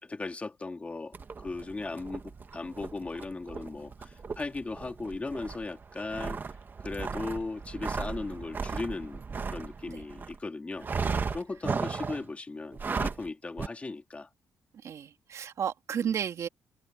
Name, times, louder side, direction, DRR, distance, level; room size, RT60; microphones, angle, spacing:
voice 1, 0.0-6.4 6.8-9.2 9.5-10.9 11.3-14.3 16.0-16.1, left 3 dB, 20° left, 3.3 m, -37 dB
sound 1, 1.1-10.4 10.8-12.3 12.7-13.3 13.6-13.7, right 5 dB, 35° right, 1.5 m, -36 dB
voice 2, 14.8-16.5, right 8 dB, 60° right, 2.4 m, -32 dB
cardioid pair, 110°, 6 cm